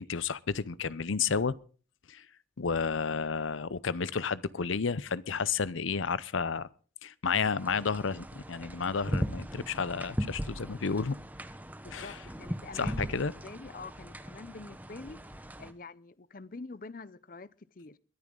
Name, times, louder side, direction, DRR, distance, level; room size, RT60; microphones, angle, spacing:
voice 1, 0.0-1.6 2.1-2.2 2.6-6.7 7.0-11.2 11.9-12.2 12.7-13.3, left 5 dB, 85° left, 0.7 m, -31 dB
sound 1, 7.6-15.7, equal, 10° right, 1.0 m, -38 dB
voice 2, 11.8-18.0, left 3 dB, 45° left, 0.6 m, -46 dB
22.0 x 11.0 x 3.9 m
head